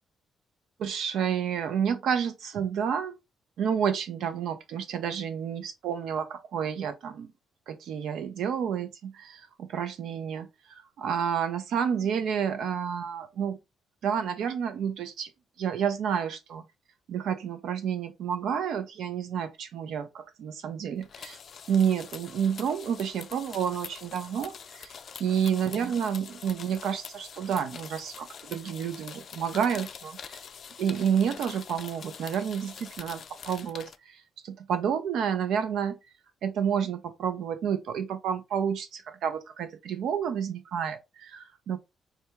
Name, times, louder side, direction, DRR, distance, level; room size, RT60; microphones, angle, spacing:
voice 1, 0.8-3.1 3.6-7.3 7.7-13.6 14.0-15.3 15.6-16.6 17.1-21.4 21.7-24.9 25.2-30.4 30.8-36.0 36.4-41.8, right 8 dB, 75° right, 0.7 m, -30 dB
sound 1, 21.0-34.0, left 7 dB, 55° left, 0.4 m, -45 dB
3.4 x 2.8 x 3.5 m
cardioid pair, 90°, 0 cm